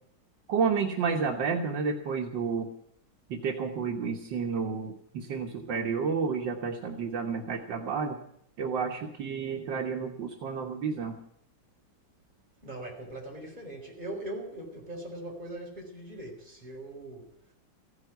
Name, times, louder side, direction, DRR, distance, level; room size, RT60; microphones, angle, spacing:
voice 1, 0.5-2.7 3.3-8.2 8.6-11.2, right 5 dB, 70° right, 1.8 m, -31 dB
voice 2, 12.6-17.3, right 1 dB, 20° right, 4.6 m, -40 dB
15.5 x 9.6 x 9.3 m
omnidirectional pair, 2.1 m